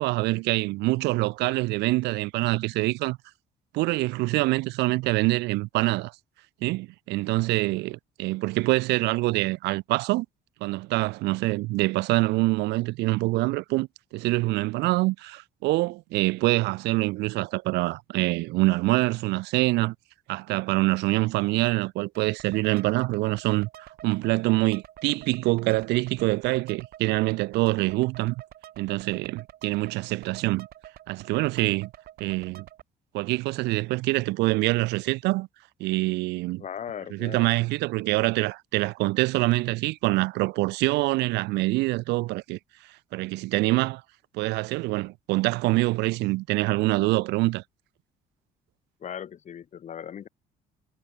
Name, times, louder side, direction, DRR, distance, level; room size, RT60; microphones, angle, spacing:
voice 1, 0.0-3.2 3.7-6.1 6.6-10.3 10.6-19.9 20.3-28.4 28.8-30.7 31.1-31.9 32.2-32.7 33.1-35.5 35.8-36.6 37.1-42.6 43.1-44.0 44.3-47.6, right 21 dB, 85° right, 0.6 m, -25 dB
sound 1, 22.1-32.8, right 12 dB, 65° right, 2.1 m, -48 dB
voice 2, 36.6-37.5 49.0-50.3, left 8 dB, 45° left, 2.2 m, -38 dB
cardioid pair, 110°, 17 cm